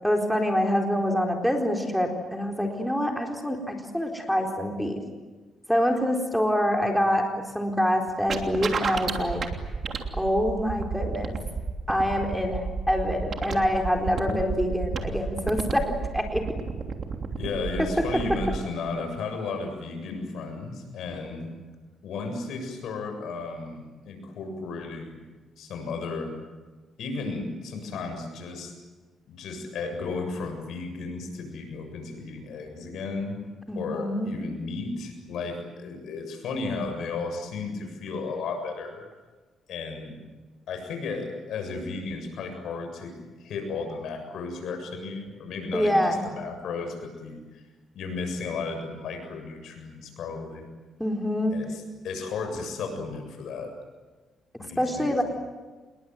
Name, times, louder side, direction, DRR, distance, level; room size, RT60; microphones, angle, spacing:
voice 1, 0.0-5.0 5.7-7.3 7.5-9.4 10.2-11.4 11.9-16.4 33.7-34.3 45.7-46.2 51.0-51.6 54.8-55.2, equal, ahead, 2 dB, 4.1 m, -25 dB
sound 1, 8.3-18.6, right 5 dB, 50° right, 3.0 m, -31 dB
voice 2, 17.4-21.5 22.0-25.2 25.6-26.3 27.0-28.7 29.3-33.4 33.8-39.0 39.7-40.2 40.7-47.6 47.9-50.7 51.5-53.7 54.6-55.2, left 4 dB, 75° left, 5 dB, 7.4 m, -34 dB
27.5 x 21.5 x 9.4 m, 1.3 s
cardioid pair, 105°, 0 cm